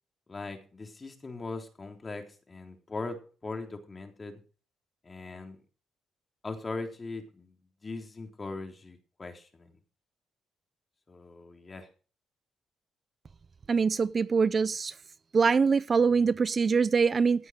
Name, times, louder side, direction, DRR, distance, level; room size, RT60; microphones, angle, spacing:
voice 1, 0.3-4.4 5.0-5.6 6.4-7.5 7.8-9.7 11.1-11.9, left 3 dB, 30° left, 3.6 m, -40 dB
voice 2, 13.7-14.9 15.3-17.5, right 5 dB, 40° right, 0.5 m, -24 dB
16.5 x 8.0 x 5.1 m
cardioid pair, 90°, 0 cm